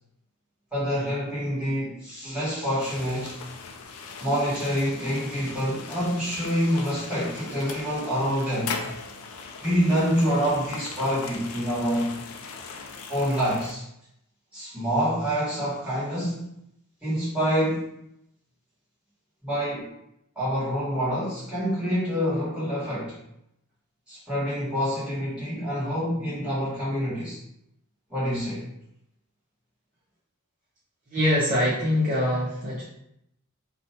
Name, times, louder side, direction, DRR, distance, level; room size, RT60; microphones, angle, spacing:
voice 1, 0.7-3.5 4.2-8.8 9.6-12.2 13.1-13.8 14.5-16.5 17.0-17.9 19.4-19.9 20.3-23.2 24.1-27.4 28.1-28.6, equal, 5° right, -11 dB, 1.4 m, -26 dB
sound 1, 2.8-13.7, left 5 dB, 85° left, 0.4 m, -39 dB
voice 2, 31.1-32.8, left 1 dB, 35° right, -8 dB, 0.6 m, -23 dB
2.7 x 2.2 x 2.8 m, 0.78 s
head